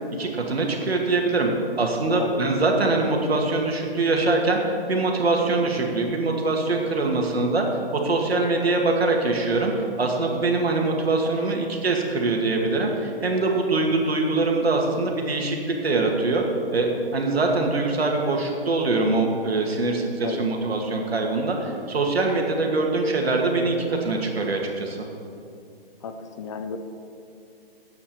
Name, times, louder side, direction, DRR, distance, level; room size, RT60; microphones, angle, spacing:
voice 1, 0.2-1.5 1.8-4.6 4.9-9.7 10.0-15.6 15.8-16.4 16.7-25.0, right 3 dB, 90° right, 1 dB, 2.2 m, -23 dB
voice 2, 26.0-26.8, left 5 dB, 30° left, 8 dB, 0.7 m, -33 dB
8.5 x 7.4 x 8.7 m, 2.5 s
hypercardioid pair, 155°, 30 cm